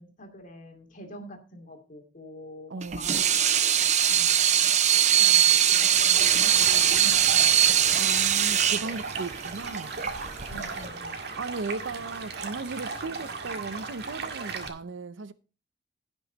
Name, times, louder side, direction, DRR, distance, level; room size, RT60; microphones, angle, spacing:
voice 1, 0.0-7.6 10.5-11.2, equal, 45° left, 2.5 m, -45 dB
voice 2, 2.7-3.1 8.0-9.9 11.4-15.3, right 3 dB, 85° right, 0.6 m, -36 dB
Water tap faucet / Sink (filling or washing), 2.8-10.9, right 10 dB, 40° right, 0.7 m, -21 dB
Stream, 6.1-14.7, right 4 dB, 60° right, 1.9 m, -37 dB
16.0 x 6.3 x 4.0 m
head